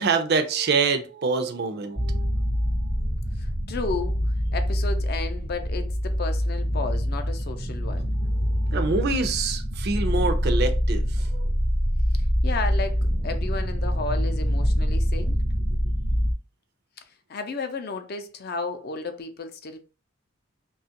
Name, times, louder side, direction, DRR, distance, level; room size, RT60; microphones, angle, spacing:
voice 1, 0.0-2.3 8.4-11.5, right 4 dB, 50° right, 0.4 m, -26 dB
sound 1, 2.0-16.3, equal, ahead, 0.5 m, -25 dB
voice 2, 3.4-4.2 4.5-8.1 12.1-15.4 17.3-19.8, left 3 dB, 50° left, 0.5 m, -33 dB
2.8 x 2.3 x 2.8 m
head